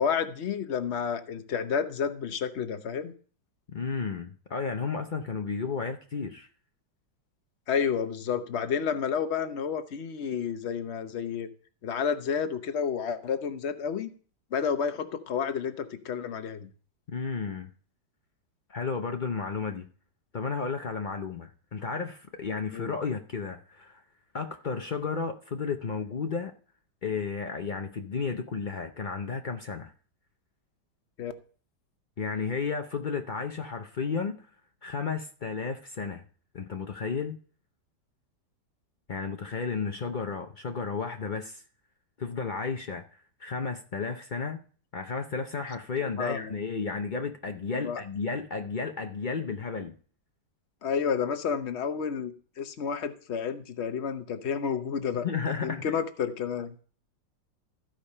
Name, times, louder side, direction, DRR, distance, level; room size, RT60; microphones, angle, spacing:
voice 1, 0.0-3.1 7.7-11.5 11.8-14.1 14.5-16.7 22.7-22.9 31.2-31.3 46.0-46.5 47.8-48.0 50.8-55.3 55.6-56.7, left 7 dB, 50° left, 0.9 m, -30 dB
voice 2, 3.7-6.5 17.1-17.7 18.7-19.9 20.3-24.0 24.3-26.5 27.0-29.9 32.2-34.5 34.8-36.2 36.5-37.4 39.1-41.6 42.2-43.0 43.4-44.6 44.9-49.9 55.2-55.9, left 5 dB, 75° left, 0.4 m, -33 dB
15.0 x 5.2 x 5.5 m
omnidirectional pair, 2.0 m